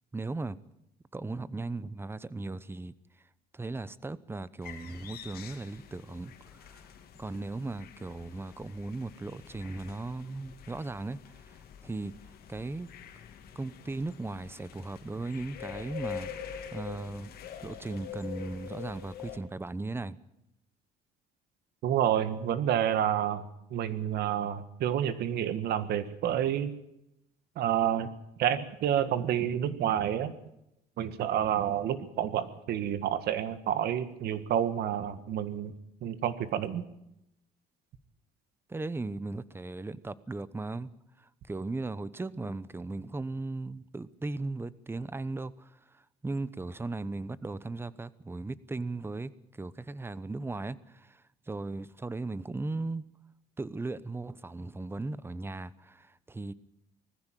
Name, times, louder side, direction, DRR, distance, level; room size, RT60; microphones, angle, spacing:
voice 1, 0.1-0.6 1.1-3.3 3.5-12.1 12.5-12.9 13.5-17.4 17.6-20.2 38.7-40.9 41.2-53.0 53.6-56.5, right 3 dB, 15° right, 0.9 m, -37 dB
sound 1, 4.6-19.4, left 8 dB, 65° left, 2.7 m, -45 dB
voice 2, 21.8-23.5 23.7-26.7 27.6-28.1 28.4-30.3 31.0-35.7 36.0-36.8, right 10 dB, 70° right, 1.8 m, -29 dB
20.0 x 15.0 x 9.2 m
cardioid pair, 110°, 17 cm